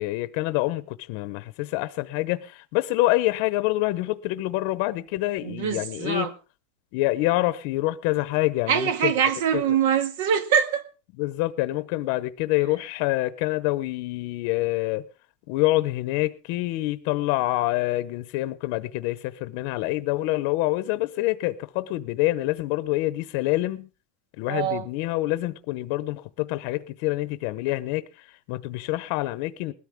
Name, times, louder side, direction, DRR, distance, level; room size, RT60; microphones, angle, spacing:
voice 1, 0.0-6.3 6.9-9.1 9.5-9.6 11.2-15.0 15.5-23.9 24.4-29.7, left 18 dB, 50° left, 0.8 m, -26 dB
voice 2, 5.4-6.3 8.7-10.9 24.5-24.9, right 8 dB, 75° right, 1.7 m, -24 dB
20.0 x 13.0 x 3.6 m
supercardioid pair, 175°, 0 cm